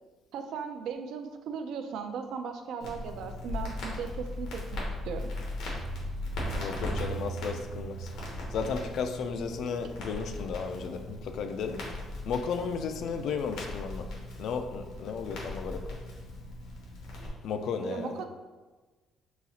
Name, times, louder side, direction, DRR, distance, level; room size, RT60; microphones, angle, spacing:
voice 1, 0.3-5.3 17.9-18.3, right 6 dB, 75° right, 6 dB, 0.4 m, -37 dB
Crackle, 2.8-17.3, left 2 dB, 90° left, 1.1 m, -38 dB
sound 1, 5.2-9.7, right 8 dB, 50° right, 0.7 m, -42 dB
voice 2, 6.5-8.1 8.5-11.8 12.3-14.1 14.4-16.0 17.4-18.2, left 5 dB, 65° left, 7 dB, 0.4 m, -34 dB
4.0 x 2.4 x 4.1 m, 1.3 s
cardioid pair, 145°, 0 cm